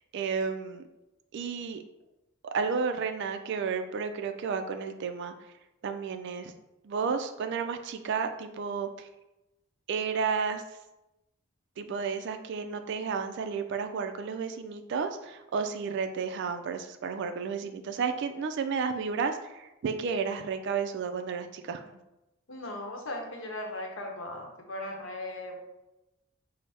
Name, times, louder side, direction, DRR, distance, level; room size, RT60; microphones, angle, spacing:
voice 1, 0.1-0.8 1.3-1.8 2.4-5.3 5.8-6.5 6.8-9.1 9.9-10.6 11.8-21.8, right 5 dB, 55° right, 7 dB, 0.3 m, -32 dB
voice 2, 22.5-25.6, left 1 dB, 65° left, 1 dB, 0.8 m, -38 dB
5.4 x 2.0 x 3.3 m, 0.96 s
head